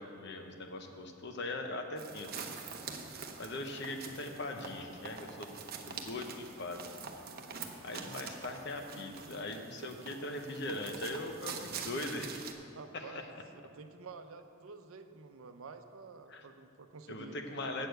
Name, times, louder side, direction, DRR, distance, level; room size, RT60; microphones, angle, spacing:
voice 1, 0.0-2.5 3.4-5.6 5.9-6.9 7.8-12.4 12.9-13.2 16.3-16.5 17.1-17.9, left 2 dB, 55° left, 5 dB, 0.9 m, -40 dB
sound 1, 2.0-12.5, right 5 dB, 45° right, 0.8 m, -45 dB
voice 2, 12.7-13.3 13.7-17.4 17.8-17.9, right 4 dB, 80° right, 8 dB, 0.6 m, -50 dB
8.1 x 6.7 x 7.9 m, 2.5 s
head